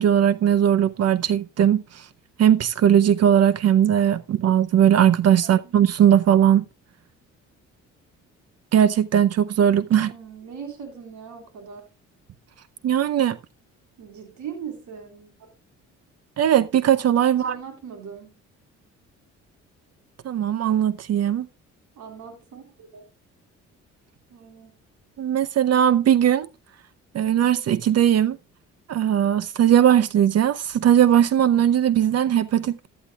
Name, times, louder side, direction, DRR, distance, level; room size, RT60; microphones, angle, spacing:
voice 1, 0.0-2.1 2.4-6.7 8.7-10.1 12.8-13.4 16.4-17.6 20.2-21.5 25.2-26.5 27.1-28.4 28.9-32.9, right 10 dB, 55° right, 0.7 m, -19 dB
voice 2, 5.4-5.8 10.0-11.8 14.0-15.5 17.3-18.4 22.0-23.0 24.3-24.8, right 7 dB, 75° right, 4.0 m, -40 dB
14.0 x 11.5 x 2.3 m
cardioid pair, 90°, 30 cm